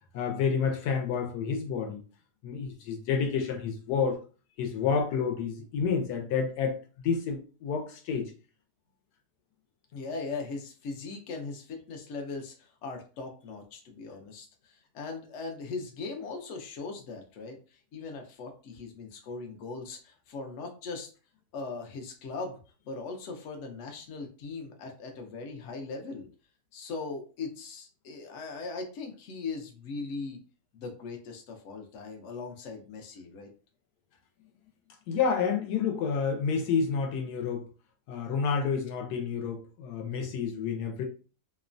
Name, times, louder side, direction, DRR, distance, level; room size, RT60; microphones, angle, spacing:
voice 1, 0.1-2.0 2.4-4.2 4.6-6.8 7.0-8.3 35.1-37.6 38.1-41.0, left 6 dB, 80° left, 1.1 m, -29 dB
voice 2, 9.9-17.6 17.9-21.1 21.5-22.6 22.9-26.3 26.7-30.4 30.7-33.5, left 4 dB, 65° left, 0.7 m, -39 dB
2.9 x 2.1 x 2.5 m
omnidirectional pair, 1.7 m